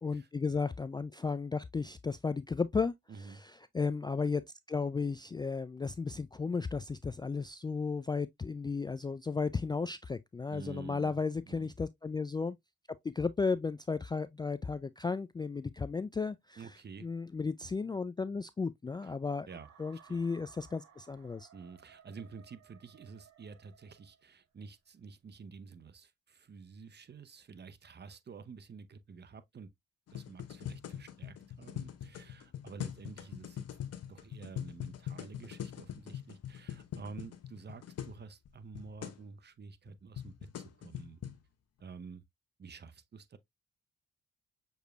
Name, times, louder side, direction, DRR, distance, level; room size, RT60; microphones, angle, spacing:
voice 1, 0.0-2.9 3.3-4.4 4.7-12.6 13.0-16.6 17.0-19.5 19.8-21.5, left 4 dB, 15° left, 0.3 m, -34 dB
voice 2, 3.1-3.4 10.5-11.2 11.5-11.7 16.6-17.1 19.0-19.1 19.4-20.2 21.5-29.7 30.1-33.6 34.1-41.2 41.8-42.2 42.6-43.4, right 5 dB, 35° right, 0.7 m, -50 dB
sound 1, 19.5-24.5, right 8 dB, 70° right, 1.3 m, -61 dB
sound 2, 30.1-38.2 38.4-38.5 38.7-39.2 39.9-41.4, left 10 dB, 55° left, 0.8 m, -43 dB
6.4 x 3.1 x 2.3 m
hypercardioid pair, 40°, 29 cm